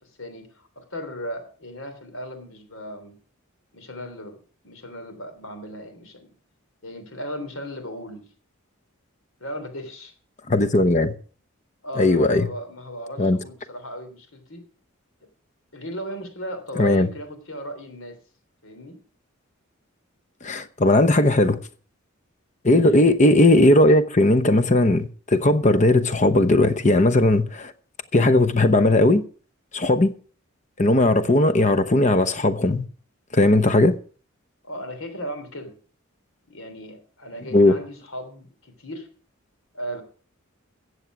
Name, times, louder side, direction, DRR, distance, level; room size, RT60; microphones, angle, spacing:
voice 1, 0.0-3.2 3.7-4.4 4.6-6.3 6.8-8.3 9.4-10.1 11.8-14.7 15.7-18.2 18.6-19.0 22.8-23.0 34.6-35.8 36.5-39.1 39.7-40.0, equal, 75° left, 3.2 m, -36 dB
voice 2, 10.5-11.1 12.0-12.5 13.2-13.4 16.8-17.1 20.4-21.6 22.6-27.7 28.1-29.2 29.7-30.1 30.8-32.8 33.3-34.0 37.5-37.8, left 2 dB, 35° left, 0.9 m, -17 dB
14.5 x 8.2 x 6.1 m
head